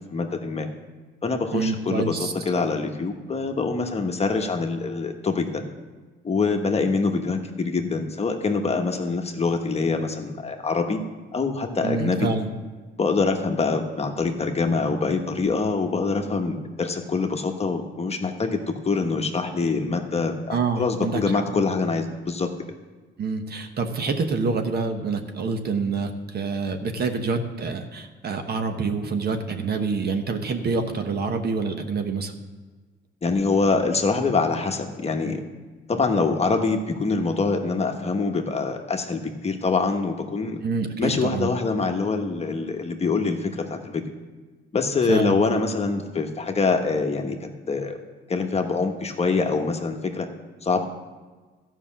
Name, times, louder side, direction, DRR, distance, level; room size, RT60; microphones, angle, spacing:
voice 1, 0.1-0.7 1.2-5.6 6.2-11.0 11.3-12.3 13.0-22.5 33.2-35.4 35.9-40.6 41.0-44.0 44.7-48.0 48.3-50.3 50.6-50.8, left 4 dB, 30° left, 4 dB, 1.1 m, -25 dB
voice 2, 1.5-2.3 11.8-12.5 20.5-21.2 21.6-21.7 23.2-32.3 40.6-41.5 45.1-45.4, right 4 dB, 55° right, 6 dB, 1.1 m, -26 dB
13.0 x 5.6 x 7.3 m, 1.3 s
cardioid pair, 90°, 20 cm